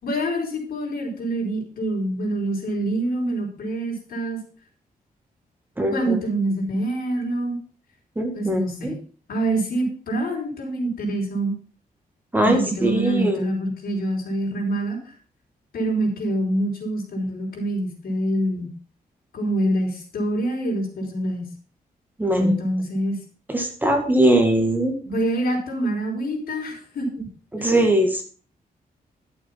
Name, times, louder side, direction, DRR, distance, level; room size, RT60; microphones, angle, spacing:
voice 1, 0.0-4.4 5.9-7.6 8.3-9.0 9.3-11.5 12.4-15.0 15.7-18.7 19.3-21.5 22.3-23.2 25.0-27.3 27.6-27.7, right 1 dB, 75° left, 0 dB, 4.6 m, -25 dB
voice 2, 5.8-6.2 8.2-8.9 12.3-13.5 22.2-22.5 23.5-25.0 27.5-28.2, right 1 dB, 10° right, 3 dB, 1.8 m, -21 dB
12.0 x 7.1 x 5.7 m, 0.41 s
wide cardioid pair, 180°, 15 cm